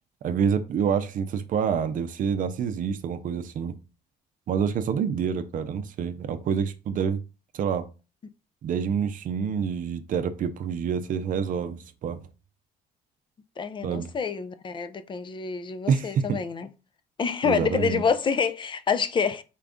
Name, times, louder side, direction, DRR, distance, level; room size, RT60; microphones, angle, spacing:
voice 1, 0.2-3.7 4.5-7.2 7.5-7.9 8.6-12.2 13.8-14.1 15.9-16.4 17.4-18.0, right 7 dB, 50° right, 0.6 m, -27 dB
voice 2, 13.6-16.7 17.2-19.4, left 6 dB, 30° left, 0.4 m, -27 dB
4.5 x 2.5 x 3.5 m
cardioid pair, 110°, 17 cm